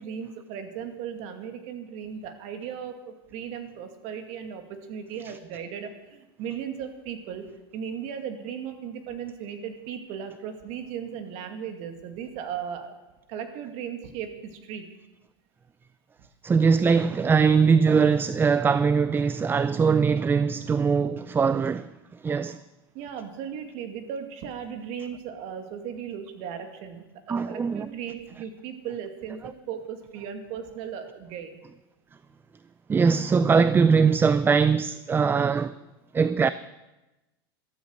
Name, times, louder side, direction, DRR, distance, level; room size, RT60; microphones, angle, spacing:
voice 1, 0.0-7.5 7.7-13.0 13.3-14.9 22.5-22.6 22.9-31.6, right 8 dB, 55° right, 2.2 m, -37 dB
voice 2, 16.4-21.9 22.2-22.6 27.3-27.9 32.9-35.8 36.1-36.5, right 5 dB, 15° right, 0.4 m, -21 dB
14.0 x 13.0 x 6.5 m
hypercardioid pair, 110°, 13 cm